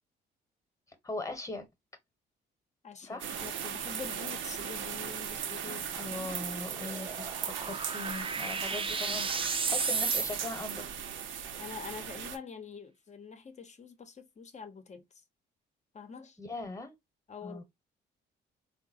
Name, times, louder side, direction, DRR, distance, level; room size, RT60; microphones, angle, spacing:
voice 1, 1.0-1.7 3.0-3.4 5.6-10.9 16.4-16.9 17.4-17.6, left 2 dB, 15° left, 1.0 m, -40 dB
voice 2, 2.8-5.8 11.6-15.2 15.9-16.4 17.3-17.6, left 6 dB, 35° left, 0.7 m, -45 dB
sound 1, 3.2-12.4, right 8 dB, 75° right, 0.7 m, -38 dB
sound 2, 3.4-10.8, right 4 dB, 25° right, 0.5 m, -36 dB
3.8 x 2.1 x 2.5 m
cardioid pair, 90°, 20 cm